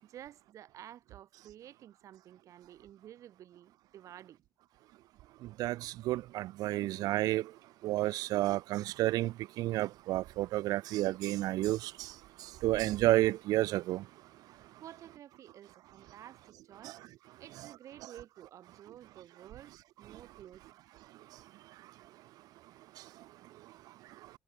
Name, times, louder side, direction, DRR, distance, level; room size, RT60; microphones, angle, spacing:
voice 1, 0.0-4.4 14.8-17.0 17.4-20.8, right 11 dB, 55° right, 5.9 m, -52 dB
voice 2, 5.6-7.5 7.8-12.1 12.6-14.0 16.8-16.9, right 16 dB, 75° right, 0.5 m, -31 dB
cardioid pair, 165°, 7 cm